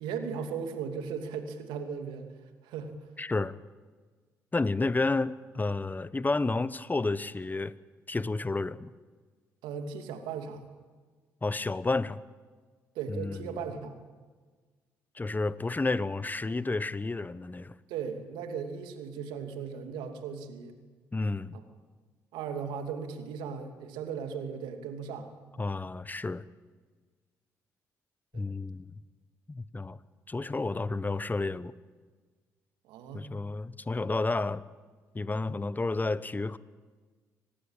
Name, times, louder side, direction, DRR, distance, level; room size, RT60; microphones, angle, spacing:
voice 1, 0.0-2.3 2.6-2.9 9.6-10.6 12.9-13.9 17.9-20.8 21.5-21.6 22.3-25.3 28.3-28.4 32.9-33.3, right 6 dB, 75° right, 2.8 m, -37 dB
voice 2, 3.2-3.5 4.5-7.7 8.1-8.9 11.4-12.2 13.1-13.6 15.1-17.7 21.1-21.6 25.6-26.5 28.3-29.0 29.5-30.0 30.3-31.7 33.1-34.6 35.1-36.6, left 3 dB, 20° left, 1.2 m, -31 dB
25.0 x 19.5 x 9.0 m
hypercardioid pair, 50°, 8 cm